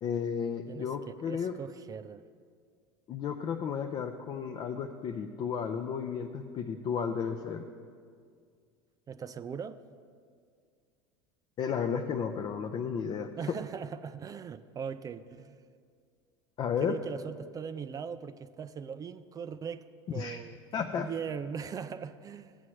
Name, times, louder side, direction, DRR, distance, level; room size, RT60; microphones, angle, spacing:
voice 1, 0.0-1.5 3.1-7.6 11.6-13.3 16.6-17.0 20.1-20.4 20.7-21.1, left 7 dB, 40° left, 4 dB, 0.6 m, -33 dB
voice 2, 1.2-2.2 9.1-9.8 13.4-15.6 16.8-22.6, right 7 dB, 30° right, 12 dB, 0.3 m, -40 dB
14.5 x 8.6 x 3.1 m, 2.1 s
hypercardioid pair, 85°, 13 cm